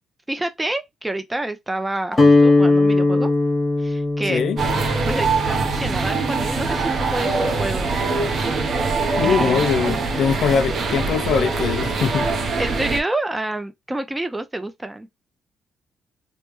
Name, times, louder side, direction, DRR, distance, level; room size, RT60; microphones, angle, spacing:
voice 1, 0.3-3.3 3.8-4.4 5.1-7.9 9.2-9.6 12.6-15.1, right 1 dB, 15° right, 0.5 m, -28 dB
Guitar, 2.1-8.2, left 2 dB, 20° left, 1.2 m, -20 dB
sound 1, 4.6-13.0, right 4 dB, 60° right, 0.7 m, -23 dB
voice 2, 9.1-12.3, left 7 dB, 70° left, 0.4 m, -22 dB
3.2 x 2.2 x 3.0 m
cardioid pair, 90°, 0 cm